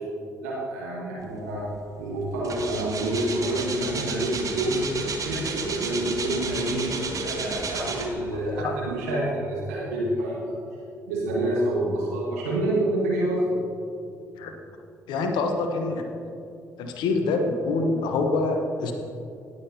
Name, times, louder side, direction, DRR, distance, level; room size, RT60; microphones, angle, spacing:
voice 1, 0.4-1.7 2.0-4.8 5.2-10.6 11.0-13.6, right 1 dB, 75° right, -4 dB, 1.5 m, -27 dB
sound 1, 1.7-1.9 2.2-8.4 9.0-9.1, right 4 dB, 40° right, 1.2 m, -32 dB
voice 2, 15.1-16.3 16.8-18.9, left 3 dB, 65° left, 4 dB, 1.1 m, -26 dB
18.5 x 7.5 x 2.8 m, 2.4 s
figure-of-eight pair, 45°, 8 cm